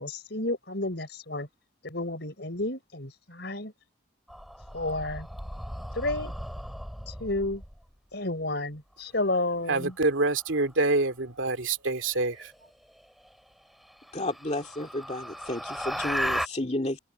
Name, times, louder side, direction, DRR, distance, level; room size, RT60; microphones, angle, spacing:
voice 1, 0.0-1.5 1.8-3.7 4.7-5.3 5.9-6.3 7.1-7.6 8.1-9.9, left 2 dB, 60° left, 5.5 m, -31 dB
sound 1, 4.3-7.8 10.1-10.6 12.6-12.7 13.2-13.3 13.8-16.5, equal, ahead, 4.1 m, -35 dB
voice 2, 9.7-12.5, right 2 dB, 85° right, 2.5 m, -26 dB
voice 3, 14.1-17.0, left 1 dB, 35° left, 2.5 m, -32 dB
head